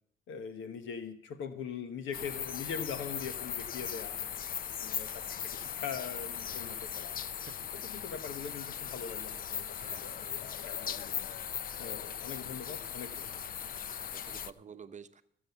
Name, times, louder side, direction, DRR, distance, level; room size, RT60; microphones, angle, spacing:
voice 1, 0.3-4.2 4.8-7.2 7.7-11.3 11.8-13.3, left 6 dB, 80° left, 10 dB, 1.1 m, -42 dB
sound 1, 2.1-14.5, left 8 dB, 45° left, 0.5 m, -39 dB
voice 2, 7.2-7.5 9.8-10.2 14.0-15.2, right 6 dB, 35° right, 9 dB, 0.8 m, -51 dB
14.5 x 7.7 x 6.9 m, 0.64 s
cardioid pair, 90°, 20 cm